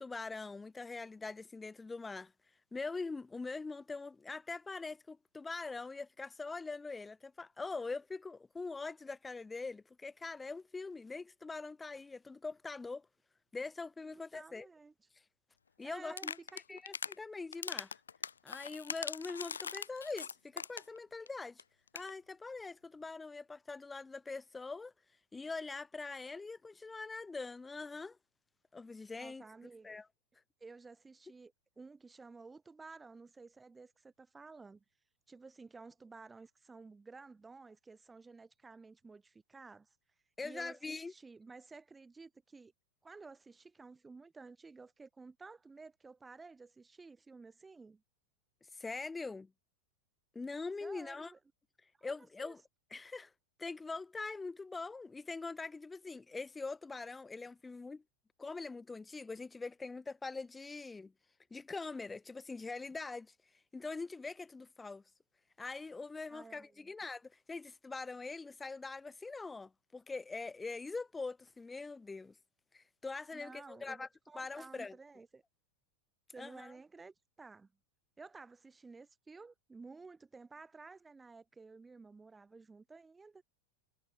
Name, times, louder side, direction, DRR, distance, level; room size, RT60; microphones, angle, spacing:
voice 1, 0.0-2.3 2.7-13.1 13.5-14.7 15.1-15.2 15.8-16.4 16.7-18.0 18.4-21.6 21.9-24.9 25.3-28.2 28.7-29.4 29.8-30.1 40.4-41.1 48.6-49.5 50.3-51.3 52.0-52.6 52.9-53.3 53.6-58.0 58.4-61.1 61.5-65.0 65.6-72.4 72.7-74.1 74.4-75.0 76.4-76.7, left 3 dB, 10° left, 0.4 m, -43 dB
voice 2, 14.1-14.9 15.8-16.8 29.2-30.0 30.6-34.8 35.3-39.9 40.4-42.7 43.0-48.0 50.8-51.4 52.0-52.6 66.3-66.9 73.3-75.4 76.3-77.7 78.2-83.4, right 4 dB, 10° right, 3.3 m, -53 dB
sound 1, 16.1-17.2 17.5-21.0 21.3-21.4 21.6-21.7 21.9-22.1, left 6 dB, 70° left, 1.1 m, -41 dB
figure-of-eight pair, 90°, 0 cm